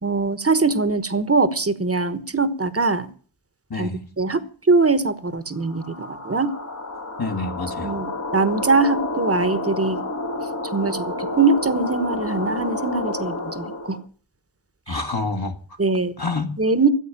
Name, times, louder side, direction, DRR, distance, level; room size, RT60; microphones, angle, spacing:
voice 1, 0.0-3.1 3.8-3.9 4.2-4.4 4.7-6.5 7.8-10.0 10.7-14.0 14.9-15.0 15.8-16.1 16.6-16.9, right 3 dB, 30° right, 1.3 m, -22 dB
voice 2, 3.7-4.0 7.2-8.0 14.9-15.8 16.2-16.5, left 3 dB, 50° left, 1.9 m, -28 dB
sound 1, 5.6-14.0, left 2 dB, 35° left, 1.4 m, -29 dB
14.0 x 8.1 x 9.0 m
wide cardioid pair, 50°, 46 cm